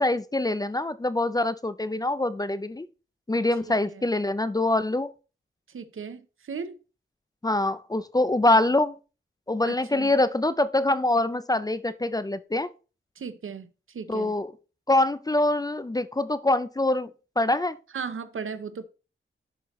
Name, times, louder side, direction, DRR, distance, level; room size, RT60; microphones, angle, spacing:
voice 1, 0.0-2.9 3.3-5.1 7.4-9.0 9.5-12.7 14.1-14.5 14.9-17.1 17.4-17.8, left 2 dB, 20° left, 0.4 m, -24 dB
voice 2, 3.6-4.0 5.7-6.8 9.7-10.1 13.2-14.4 17.9-18.8, right 6 dB, 80° right, 0.7 m, -37 dB
11.0 x 4.4 x 3.1 m
wide cardioid pair, 120°, 21 cm